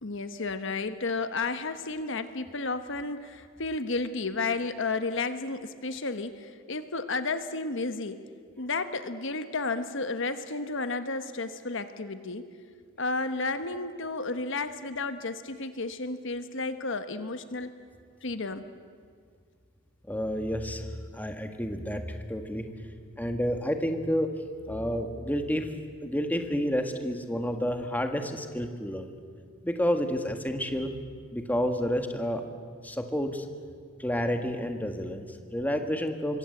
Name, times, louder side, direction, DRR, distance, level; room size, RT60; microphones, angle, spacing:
voice 1, 0.0-8.2 8.6-12.5 13.0-17.7 18.2-18.7, left 3 dB, 65° left, 10 dB, 1.2 m, -32 dB
voice 2, 20.1-20.9 21.1-22.7 23.2-24.3 24.7-25.7 26.0-29.1 29.6-31.0 31.3-32.4 32.8-33.4 34.0-36.4, equal, 10° left, 5 dB, 1.7 m, -30 dB
26.0 x 24.0 x 7.9 m, 2.1 s
head